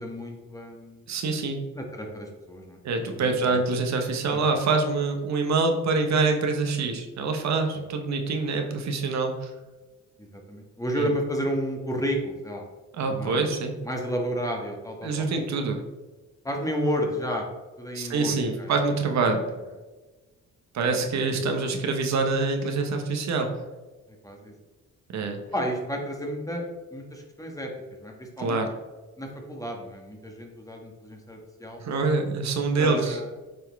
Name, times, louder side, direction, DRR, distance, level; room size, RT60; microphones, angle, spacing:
voice 1, 0.0-1.1 1.7-2.8 3.1-3.6 4.3-4.6 7.7-7.8 10.2-12.7 13.1-13.5 13.8-15.3 15.5-15.6 16.4-17.5 17.8-18.7 20.9-21.0 24.2-24.5 25.5-27.7 28.0-28.6 29.2-31.8 32.8-33.3, equal, 10° left, 1 dB, 1.5 m, -32 dB
voice 2, 1.1-1.6 2.8-9.5 10.9-11.1 13.0-13.7 15.0-15.8 17.9-19.4 20.7-23.5 25.1-25.4 28.4-28.7 31.8-33.2, right 3 dB, 65° right, 4 dB, 1.1 m, -25 dB
7.9 x 4.4 x 3.5 m, 1.2 s
cardioid pair, 90°, 30 cm